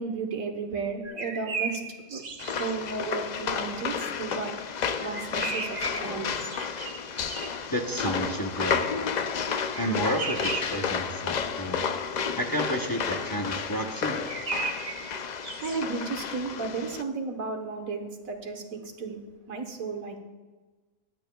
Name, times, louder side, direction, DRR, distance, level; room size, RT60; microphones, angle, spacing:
voice 1, 0.0-1.8 2.1-2.2 2.6-4.5 4.8-6.3 15.6-19.2 19.5-20.2, right 4 dB, 90° right, 4 dB, 1.6 m, -33 dB
sound 1, 1.0-2.7 5.0-7.7 9.7-10.9 14.0-15.8, right 4 dB, 35° right, 0.9 m, -35 dB
sound 2, 2.4-17.0, left 6 dB, 90° left, 0.3 m, -32 dB
voice 2, 7.7-9.1 9.8-11.8 12.4-14.3, equal, 20° left, 1 dB, 0.8 m, -31 dB
23.5 x 8.9 x 2.3 m, 1.3 s
omnidirectional pair, 1.4 m